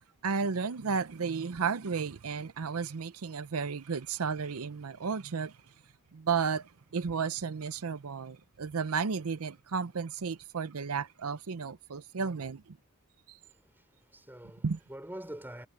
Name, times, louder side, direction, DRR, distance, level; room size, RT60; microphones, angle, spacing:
voice 1, 0.2-5.6 6.1-12.8 13.3-13.4 14.6-14.8, right 5 dB, 75° right, 0.6 m, -33 dB
voice 2, 13.4-15.7, right 1 dB, 10° right, 3.6 m, -46 dB
head